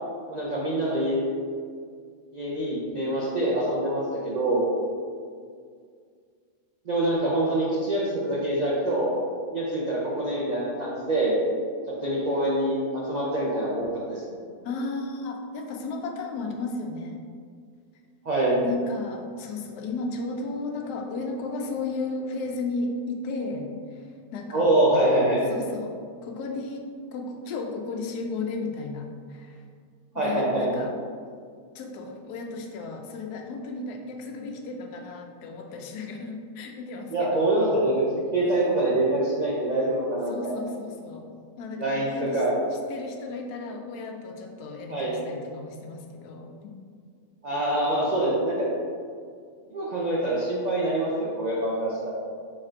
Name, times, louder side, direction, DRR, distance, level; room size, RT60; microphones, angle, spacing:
voice 1, 0.3-1.2 2.3-4.7 6.9-9.1 9.5-11.4 12.0-14.2 18.2-18.6 24.5-25.4 30.1-30.7 37.1-38.0 38.3-40.5 41.8-42.6 44.9-45.1 47.4-48.7 49.7-52.2, right 1 dB, 90° right, -5 dB, 0.3 m, -25 dB
voice 2, 14.6-17.1 18.6-24.8 25.5-26.8 27.1-29.6 30.1-31.0 31.7-37.5 38.4-38.9 40.3-42.4 42.9-46.7, left 3 dB, 85° left, 2 dB, 1.1 m, -34 dB
4.2 x 2.5 x 4.3 m, 2.1 s
omnidirectional pair, 1.6 m